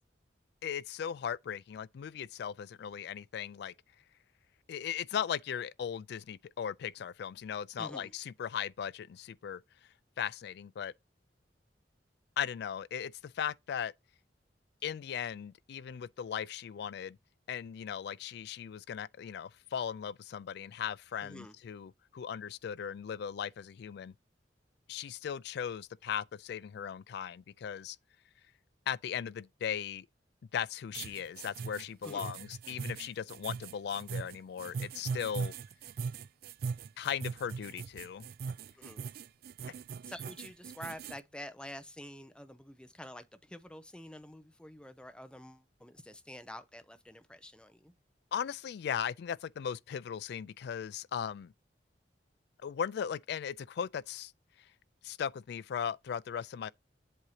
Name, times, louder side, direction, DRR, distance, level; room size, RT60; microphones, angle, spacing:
voice 1, 0.6-3.7 4.7-9.6 10.2-10.9 12.4-13.9 14.8-17.2 17.5-24.1 24.9-28.0 28.9-30.1 30.5-35.5 37.0-38.3 48.3-51.5 52.6-54.3 55.0-56.7, left 8 dB, 65° left, 0.3 m, -38 dB
voice 2, 7.8-8.1 21.2-21.6 32.0-32.4 38.8-39.0 40.0-47.9, left 1 dB, 5° left, 0.5 m, -48 dB
sound 1, 30.9-41.2, right 5 dB, 55° right, 0.3 m, -40 dB
7.7 x 2.7 x 4.8 m
head